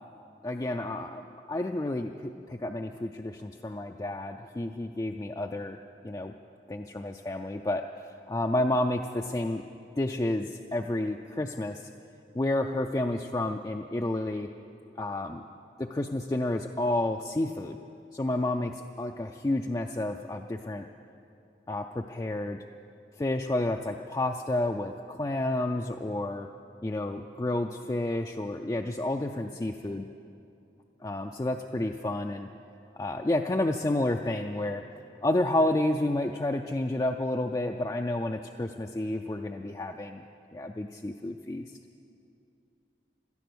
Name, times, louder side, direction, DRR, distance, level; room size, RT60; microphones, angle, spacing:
voice 1, 0.4-5.8 6.0-6.3 6.7-9.6 10.0-11.9 12.3-14.5 15.0-15.4 15.8-17.8 18.1-20.9 21.7-22.6 23.2-26.5 26.8-30.1 31.0-32.5 33.0-34.8 35.2-40.2 40.5-41.7, left 1 dB, 20° left, 4 dB, 0.4 m, -30 dB
17.0 x 12.5 x 6.2 m, 2.6 s
head